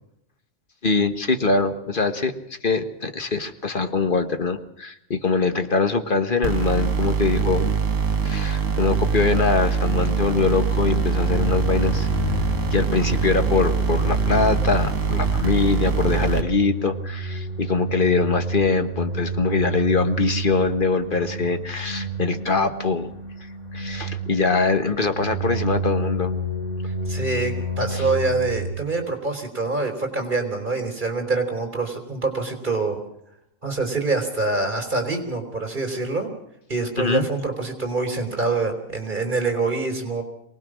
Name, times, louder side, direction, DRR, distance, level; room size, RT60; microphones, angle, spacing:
voice 1, 0.8-2.3 2.6-7.7 8.2-12.1 12.7-23.1 23.7-26.3 27.9-28.0 37.0-37.3, left 4 dB, 40° left, 8 dB, 1.4 m, -23 dB
sound 1, 6.4-16.4, right 6 dB, 65° right, 2.2 m, -23 dB
sound 2, 11.1-28.7, right 1 dB, 55° left, 7.3 m, -30 dB
voice 2, 27.1-33.0 33.6-36.3 36.7-40.2, right 3 dB, 35° right, 5 dB, 3.8 m, -25 dB
23.5 x 19.0 x 6.2 m, 0.79 s
omnidirectional pair, 1.5 m